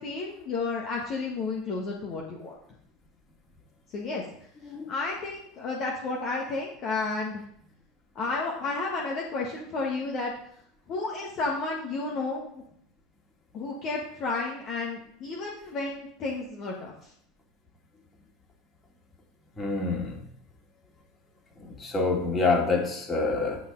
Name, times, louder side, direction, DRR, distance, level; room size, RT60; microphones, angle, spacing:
voice 1, 0.0-2.5 3.9-4.2 4.9-7.4 8.1-10.3 10.9-12.6 13.5-16.9, left 3 dB, 40° left, -2 dB, 1.5 m, -32 dB
voice 2, 19.6-20.2 21.8-23.6, left 3 dB, 20° left, -1 dB, 2.5 m, -26 dB
9.8 x 5.6 x 3.9 m, 0.68 s
figure-of-eight pair, 75°, 0 cm